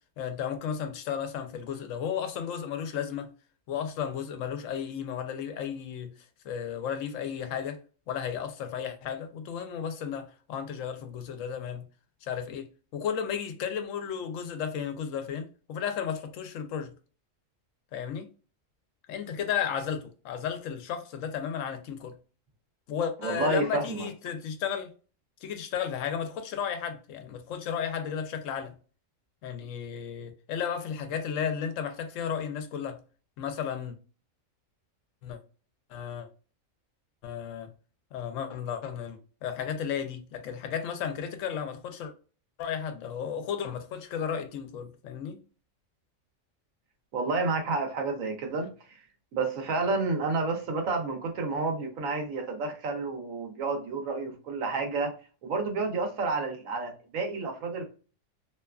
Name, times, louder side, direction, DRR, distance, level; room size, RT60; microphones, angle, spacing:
voice 1, 0.2-3.3 3.7-6.1 6.4-7.8 8.1-11.9 12.2-16.9 17.9-18.3 19.1-22.2 22.9-24.9 25.4-28.7 29.4-33.0 33.4-34.0 35.2-35.4 35.9-36.3 37.2-37.7 38.1-42.1 42.6-45.4, left 8 dB, 75° left, 0.9 m, -34 dB
voice 2, 23.2-24.1 47.1-49.0 49.3-55.1 55.4-57.8, right 3 dB, 85° right, 1.2 m, -30 dB
2.8 x 2.3 x 2.2 m
omnidirectional pair, 1.4 m